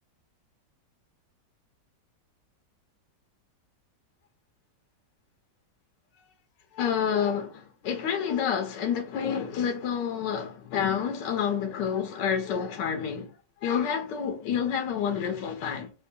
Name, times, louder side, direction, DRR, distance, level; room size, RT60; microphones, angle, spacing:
voice 1, 6.7-13.4 13.6-15.9, left 7 dB, 80° left, 1.4 m, -29 dB
4.2 x 2.2 x 4.3 m
omnidirectional pair, 1.9 m